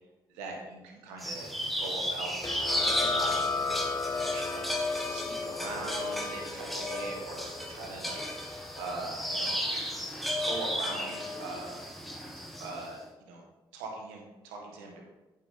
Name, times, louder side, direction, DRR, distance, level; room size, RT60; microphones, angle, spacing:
voice 1, 0.3-1.5 1.8-3.9 4.2-8.2 8.8-9.6 10.4-11.9 12.6-13.4 13.7-15.0, right 3 dB, 85° right, 1 dB, 1.7 m, -41 dB
sound 1, 1.2-12.9, left 1 dB, ahead, 2.3 m, -34 dB
sound 2, 2.4-9.7, left 4 dB, 25° left, 0.4 m, -36 dB
8.8 x 7.4 x 4.2 m, 1.1 s
hypercardioid pair, 45°, 12 cm